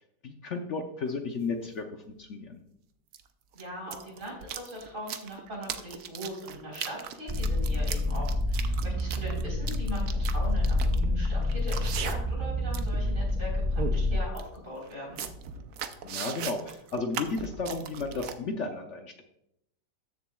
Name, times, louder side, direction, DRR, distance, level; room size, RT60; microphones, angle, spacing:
voice 1, 0.2-2.6 16.0-19.2, left 3 dB, 60° left, 4 dB, 0.8 m, -34 dB
sound 1, 1.1-1.2 3.1-3.2 3.5-12.4 12.7-13.0 13.4-13.5 13.8-13.9 14.4-14.5 14.9-18.3, right 8 dB, 65° right, 1.1 m, -38 dB
voice 2, 3.5-15.2, equal, 45° right, -3 dB, 4.3 m, -40 dB
sound 2, 7.3-14.2, left 1 dB, 25° right, 0.8 m, -28 dB
14.0 x 7.2 x 2.3 m, 0.78 s
omnidirectional pair, 1.9 m